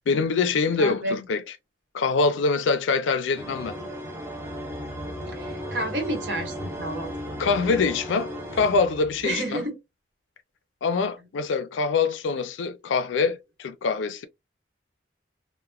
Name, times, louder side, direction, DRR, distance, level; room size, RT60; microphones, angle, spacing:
voice 1, 0.1-1.6 1.9-3.8 7.4-9.6 10.8-14.3, left 4 dB, 90° left, 0.4 m, -24 dB
voice 2, 0.8-1.2 5.3-7.1 9.2-9.8, right 1 dB, 75° right, 1.1 m, -30 dB
sound 1, 3.3-9.4, equal, 15° right, 0.6 m, -35 dB
2.9 x 2.1 x 2.3 m
head